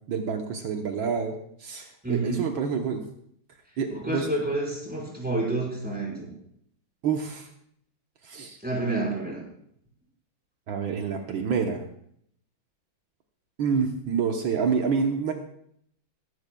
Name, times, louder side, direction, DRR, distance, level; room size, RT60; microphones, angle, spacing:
voice 1, 0.1-1.3 1.6-3.0 3.8-4.3 7.0-7.5 8.2-8.6 10.7-11.8 13.6-15.3, right 6 dB, 75° right, 3 dB, 1.8 m, -27 dB
voice 2, 2.0-2.5 3.9-6.3 8.6-9.4, right 2 dB, 5° right, -3 dB, 4.8 m, -29 dB
22.5 x 12.0 x 2.3 m, 0.67 s
omnidirectional pair, 2.2 m